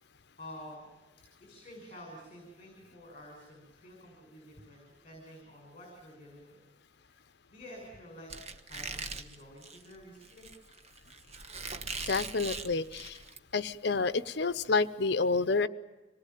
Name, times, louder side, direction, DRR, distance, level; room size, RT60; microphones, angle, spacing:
voice 1, 0.4-0.9 1.4-6.6 7.0-7.2 7.5-10.5, left 1 dB, 30° left, 1 dB, 6.2 m, -50 dB
Squeak, 8.3-13.4, right 4 dB, 35° right, 1.2 m, -41 dB
voice 2, 12.1-13.2 13.5-15.7, left 4 dB, 65° left, 13 dB, 0.8 m, -29 dB
25.5 x 19.5 x 9.3 m, 1.2 s
head